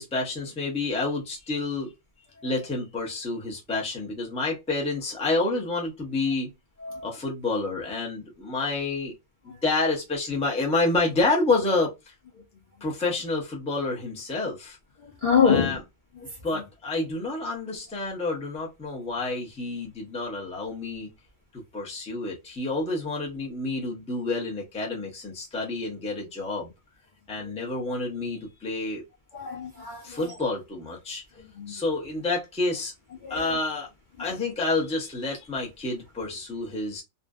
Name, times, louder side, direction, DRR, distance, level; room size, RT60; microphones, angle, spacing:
voice 1, 0.0-1.9 2.4-6.5 7.0-9.1 9.4-11.9 12.8-14.8 15.4-15.8 16.4-21.1 21.5-26.7 27.3-29.0 30.0-31.2 31.7-32.9 33.3-33.9 34.2-37.0, left 3 dB, 10° left, 0.5 m, -29 dB
voice 2, 15.0-15.8 29.3-30.3 31.6-31.7 33.2-33.6 34.2-34.3, left 6 dB, 50° left, 0.6 m, -25 dB
2.6 x 2.1 x 2.2 m
omnidirectional pair, 1.4 m